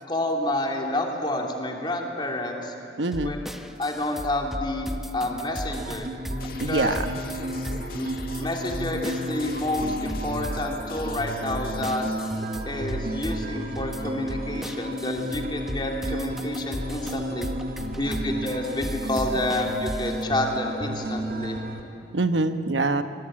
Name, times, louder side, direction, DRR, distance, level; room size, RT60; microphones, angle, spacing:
voice 1, 0.1-2.7 3.2-3.4 3.8-6.1 6.7-6.9 7.9-8.1 8.4-12.1 12.7-17.5 18.0-21.6, left 1 dB, 25° left, 1 dB, 2.9 m, -29 dB
voice 2, 3.0-3.4 5.9-6.0 6.6-7.2 7.5-8.0 22.1-23.0, right 2 dB, 90° right, 9 dB, 1.1 m, -26 dB
sound 1, 3.1-20.2, equal, ahead, 0.9 m, -36 dB
sound 2, 5.8-21.8, right 1 dB, 55° right, 2.0 m, -33 dB
sound 3, 6.4-12.4, left 4 dB, 55° left, 1.5 m, -43 dB
26.5 x 21.5 x 8.8 m, 2.9 s
head